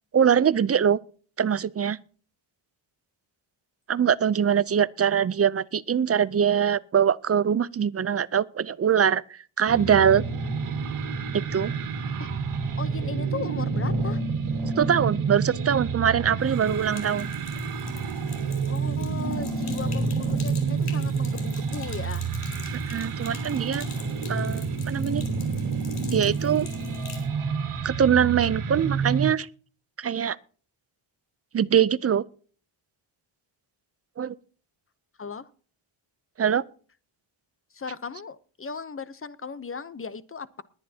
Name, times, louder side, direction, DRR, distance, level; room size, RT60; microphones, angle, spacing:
voice 1, 0.1-1.0 1.4-2.0 3.9-10.2 11.3-11.7 14.8-17.3 22.9-23.8 24.3-25.3 26.1-26.7 27.8-29.5 30.0-30.4 31.5-32.2 34.2-34.3 36.4-36.6, right 8 dB, 30° right, 0.5 m, -23 dB
sound 1, 9.7-29.3, right 5 dB, 85° right, 2.0 m, -29 dB
voice 2, 12.8-14.2 18.6-22.3 35.2-35.5 37.7-40.6, left 5 dB, 25° left, 0.7 m, -37 dB
Sink (filling or washing), 16.4-27.3, left 4 dB, 90° left, 4.2 m, -45 dB
21.0 x 9.8 x 2.8 m
wide cardioid pair, 125°, 49 cm